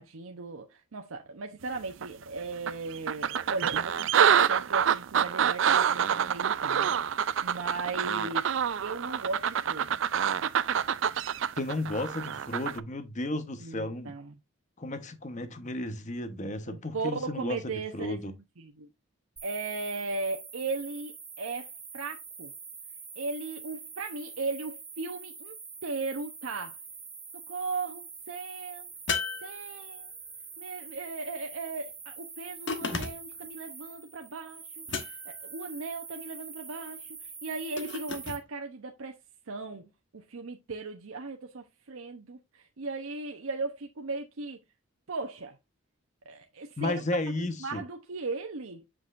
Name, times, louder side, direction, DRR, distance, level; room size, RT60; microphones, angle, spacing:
voice 1, 0.0-8.5 8.8-10.0 13.6-14.3 16.7-18.9 19.4-22.5 23.2-25.6 25.8-26.8 27.3-28.9 29.4-30.1 30.6-39.2 39.5-44.6 45.1-45.6 46.3-47.0 47.6-48.8, right 3 dB, 90° right, 0.8 m, -37 dB
sound 1, 2.0-2.1 2.7-12.8, right 8 dB, 65° right, 0.4 m, -27 dB
voice 2, 11.6-14.1 14.8-17.6 17.9-18.3 46.8-47.8, left 2 dB, 35° left, 1.0 m, -33 dB
sound 2, 19.4-38.4, right 5 dB, 10° right, 1.7 m, -45 dB
sound 3, 29.1-30.2 32.7-33.4 34.9-35.5 37.8-38.4, left 5 dB, 60° left, 1.2 m, -34 dB
7.4 x 6.1 x 2.5 m
head